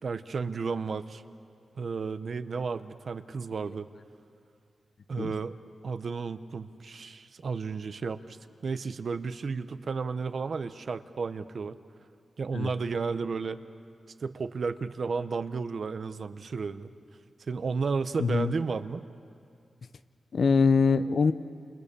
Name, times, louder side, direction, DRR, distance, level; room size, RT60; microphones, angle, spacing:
voice 1, 0.0-1.2 1.7-3.9 5.1-5.5 5.8-8.4 8.6-11.8 12.4-13.6 14.2-16.9 17.5-19.0, right 4 dB, 55° right, 11 dB, 0.9 m, -33 dB
voice 2, 18.2-18.5 20.3-21.3, left 5 dB, 55° left, 11 dB, 0.8 m, -23 dB
29.5 x 28.0 x 6.9 m, 2.4 s
wide cardioid pair, 115°, 0 cm